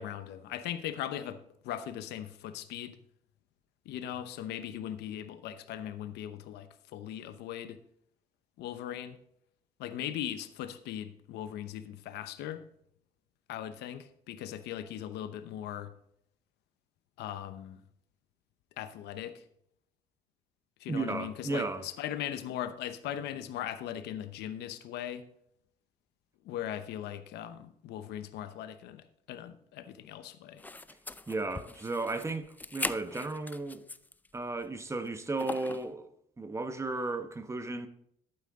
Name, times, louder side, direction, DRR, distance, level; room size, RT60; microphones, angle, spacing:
voice 1, 0.0-1.4 1.6-3.0 3.9-7.8 8.6-9.2 9.8-12.6 13.5-15.9 17.2-17.8 18.8-19.4 20.8-25.2 26.4-30.6, left 11 dB, 80° left, 0.9 m, -39 dB
voice 2, 20.9-21.8 31.3-32.5 32.7-33.8 34.3-36.1 36.4-37.9, right 3 dB, 15° right, 1.1 m, -34 dB
sound 1, 30.6-34.3 34.6-34.7 35.4-35.9, left 2 dB, 10° left, 0.4 m, -40 dB
12.0 x 9.1 x 3.7 m
cardioid pair, 110°, 17 cm